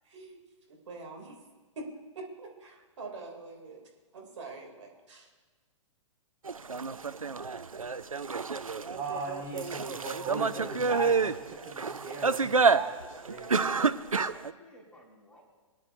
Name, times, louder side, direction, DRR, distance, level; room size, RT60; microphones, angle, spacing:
voice 1, 0.7-1.4 1.8-1.9 2.2-3.8 4.1-5.3, right 3 dB, 65° right, 0 dB, 2.8 m, -44 dB
sound 1, 6.5-14.5, right 4 dB, 90° right, 0.5 m, -28 dB
voice 2, 8.9-13.5, right 3 dB, 30° right, -1 dB, 1.9 m, -38 dB
voice 3, 10.6-10.9 13.6-15.4, left 1 dB, 5° left, -4 dB, 3.6 m, -52 dB
22.0 x 10.5 x 2.6 m, 1.4 s
figure-of-eight pair, 115°, 17 cm